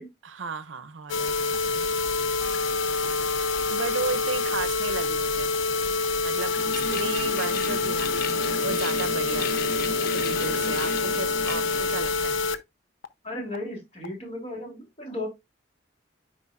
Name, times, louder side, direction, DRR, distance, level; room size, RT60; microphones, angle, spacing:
voice 1, 0.2-1.9 3.7-5.5 6.2-8.1 8.6-9.7 10.1-12.4, right 4 dB, 85° right, 0.7 m, -34 dB
sound 1, 1.1-12.6 13.0-13.1 13.5-13.6 14.0-14.1, left 3 dB, 85° left, 0.7 m, -26 dB
sound 2, 6.5-12.3, left 3 dB, 50° left, 0.7 m, -35 dB
sound 3, 8.1-12.1, left 4 dB, ahead, 3.6 m, -47 dB
voice 2, 13.2-15.3, left 1 dB, 30° left, 3.1 m, -35 dB
9.7 x 4.9 x 2.4 m
head